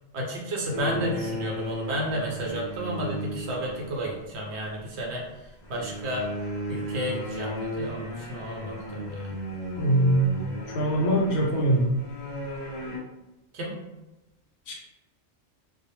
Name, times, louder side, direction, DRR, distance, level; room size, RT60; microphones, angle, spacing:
voice 1, 0.1-6.3 6.7-9.3 13.5-13.8, equal, 70° right, -1 dB, 0.9 m, -32 dB
sound 1, 0.7-4.3 5.6-13.0, equal, 45° left, 0.3 m, -35 dB
voice 2, 9.8-10.4 10.7-12.0 14.7-14.8, right 1 dB, 70° left, -2 dB, 0.8 m, -22 dB
2.2 x 2.0 x 3.0 m, 0.99 s
omnidirectional pair, 1.2 m